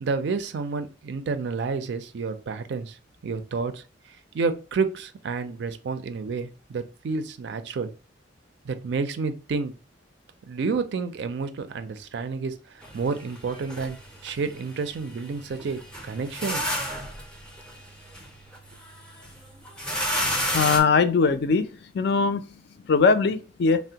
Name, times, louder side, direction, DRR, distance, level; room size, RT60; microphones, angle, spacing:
voice 1, 0.0-3.0 3.2-3.8 4.3-7.9 8.6-9.7 10.5-12.5 12.9-14.0 14.2-16.7, right 4 dB, 65° right, 0.4 m, -29 dB
sound 1, 12.8-20.8, equal, 5° left, 0.5 m, -32 dB
voice 2, 20.5-21.7 21.9-22.5 22.9-23.8, left 4 dB, 60° left, 0.4 m, -20 dB
3.4 x 2.1 x 2.7 m
head